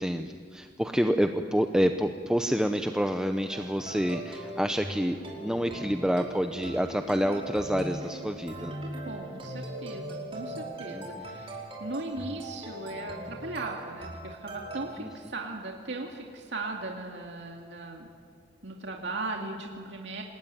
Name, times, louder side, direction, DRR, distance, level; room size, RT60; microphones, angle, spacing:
voice 1, 0.0-8.7 10.9-11.3 15.0-15.1, equal, 5° right, 6 dB, 0.8 m, -28 dB
sound 1, 3.5-14.9, right 1 dB, 30° right, 5.2 m, -40 dB
voice 2, 9.1-18.1 18.6-20.2, right 2 dB, 70° right, 0 dB, 2.4 m, -38 dB
26.5 x 20.5 x 9.3 m, 2.2 s
head